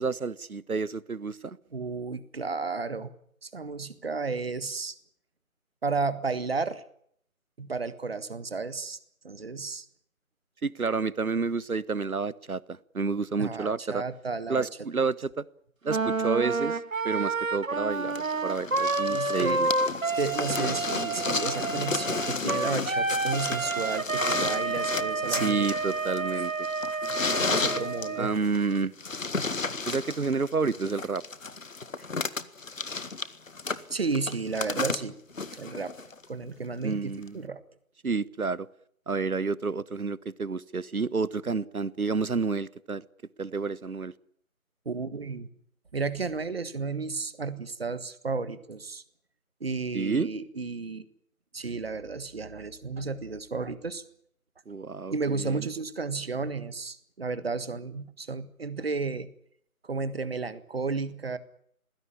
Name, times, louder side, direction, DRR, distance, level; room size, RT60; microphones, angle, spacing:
voice 1, 0.0-1.6 10.6-14.0 14.5-15.4 15.8-16.8 17.0-18.1 18.4-19.7 25.3-26.5 28.2-28.9 29.9-31.2 36.8-37.4 38.0-38.7 39.1-43.0 43.4-44.1 49.9-50.3 54.7-55.7, right 4 dB, 80° right, 20 dB, 1.2 m, -29 dB
voice 2, 1.7-3.1 3.4-4.9 5.8-6.8 7.6-9.0 9.2-9.8 13.4-14.7 19.1-19.7 20.1-25.7 26.2-26.3 27.4-28.3 32.0-32.1 33.9-35.2 35.5-35.9 36.3-37.6 44.8-45.5 45.9-49.0 49.6-51.0 51.5-54.0 55.1-59.3 59.8-61.4, right 4 dB, 45° right, 14 dB, 1.7 m, -33 dB
Wind instrument woodwind instrument, 15.9-28.4, right 3 dB, 65° right, 2.4 m, -29 dB
sound 1, 18.2-36.2 37.3-37.4, left 4 dB, 65° left, 1.7 m, -33 dB
23.0 x 16.5 x 9.9 m, 0.66 s
figure-of-eight pair, 165°, 43 cm